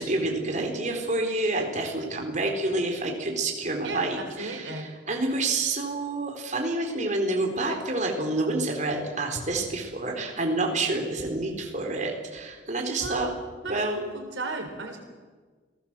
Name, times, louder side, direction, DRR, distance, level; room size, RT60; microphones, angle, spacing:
voice 1, 0.0-13.3 13.7-14.0, right 2 dB, 40° right, 2 dB, 4.3 m, -28 dB
voice 2, 3.8-4.9 13.0-13.3 13.6-15.0, right 2 dB, 80° right, 5 dB, 3.9 m, -35 dB
29.0 x 18.5 x 7.6 m, 1.5 s
head